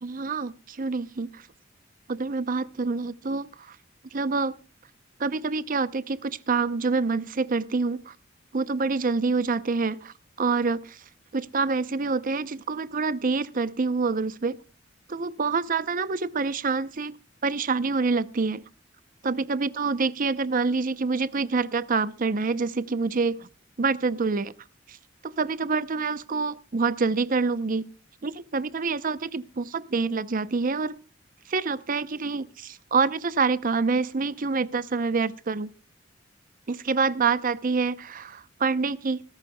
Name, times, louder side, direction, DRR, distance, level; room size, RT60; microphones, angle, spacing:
voice 1, 0.0-1.4 2.1-3.8 4.1-4.6 5.2-8.1 8.5-11.0 11.3-14.6 15.1-17.2 17.4-18.6 19.2-23.5 23.8-24.5 24.9-25.0 25.2-27.9 28.2-31.0 31.5-35.7 36.7-39.2, right 4 dB, 45° right, 0.6 m, -26 dB
25.0 x 14.0 x 2.2 m
head